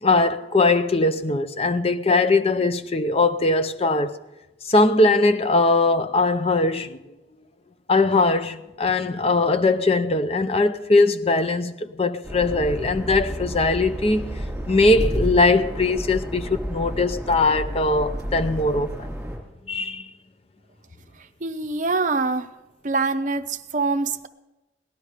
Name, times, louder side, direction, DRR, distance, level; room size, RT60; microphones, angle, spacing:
voice 1, 0.0-4.2 4.6-7.0 7.9-14.2 14.7-19.1 19.7-20.1, left 2 dB, 30° left, 0.6 m, -20 dB
sound 1, 12.2-19.4, equal, 5° right, 3.3 m, -31 dB
voice 2, 21.4-22.5 22.8-24.3, right 3 dB, 45° right, 0.7 m, -24 dB
18.0 x 11.5 x 5.0 m
head